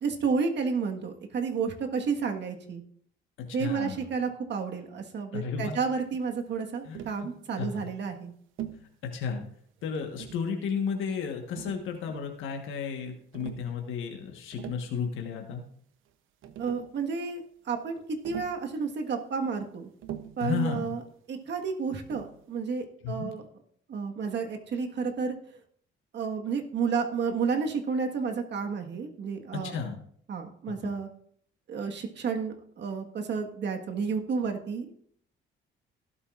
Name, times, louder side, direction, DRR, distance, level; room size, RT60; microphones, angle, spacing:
voice 1, 0.0-2.8 3.5-8.3 16.6-19.9 20.4-21.0 21.3-23.4 23.9-25.3 26.1-29.7 30.3-31.1 31.7-34.9, right 5 dB, 60° right, 4 dB, 1.5 m, -31 dB
voice 2, 3.5-4.0 5.3-5.8 6.8-7.0 7.6-7.9 9.1-9.4 9.8-15.6 20.4-20.9 23.0-23.3 29.5-30.0 30.7-30.9, left 6 dB, 85° left, 3 dB, 1.4 m, -33 dB
Tap, 6.9-7.3 8.6-8.9 9.9-10.5 11.6-12.3 13.3-13.7 14.4-14.9 16.1-16.2 16.4-16.9 18.2-18.6 20.0-20.5 22.1-22.4, right 11 dB, 80° right, 0.8 m, -42 dB
16.0 x 8.2 x 2.5 m, 0.63 s
cardioid pair, 90°, 20 cm